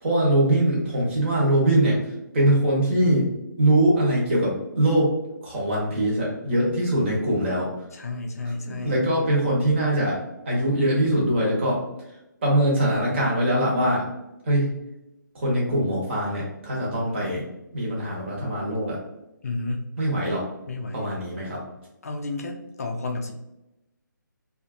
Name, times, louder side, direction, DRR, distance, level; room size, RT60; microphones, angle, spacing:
voice 1, 0.0-2.0 2.3-3.2 3.6-5.1 5.4-7.7 8.6-10.2 10.4-11.8 12.4-14.1 14.5-14.7 15.3-17.4 17.7-19.0 20.0-20.4 20.9-21.6, right 1 dB, 35° right, -4 dB, 1.1 m, -22 dB
voice 2, 7.9-9.0 19.4-19.9 20.7-21.1 22.0-23.3, left 2 dB, 50° left, 2 dB, 0.4 m, -31 dB
2.6 x 2.4 x 2.5 m, 0.93 s
figure-of-eight pair, 150°, 11 cm